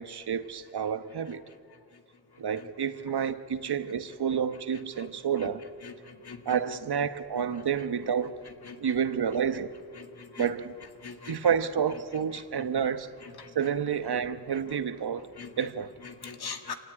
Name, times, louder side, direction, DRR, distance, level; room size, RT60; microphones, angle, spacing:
voice 1, 0.0-1.4 2.4-5.6 6.4-8.4 8.8-9.7 10.4-10.7 11.3-13.1 13.5-15.3 15.6-15.9, right 7 dB, 80° right, 1.2 m, -29 dB
voice 2, 5.8-6.6 8.6-9.0 10.0-10.5 11.0-11.4 12.6-12.7 13.2-13.6 15.4-15.7 16.0-16.8, left 6 dB, 75° left, 1.9 m, -42 dB
26.0 x 17.0 x 9.8 m
wide cardioid pair, 80°, 39 cm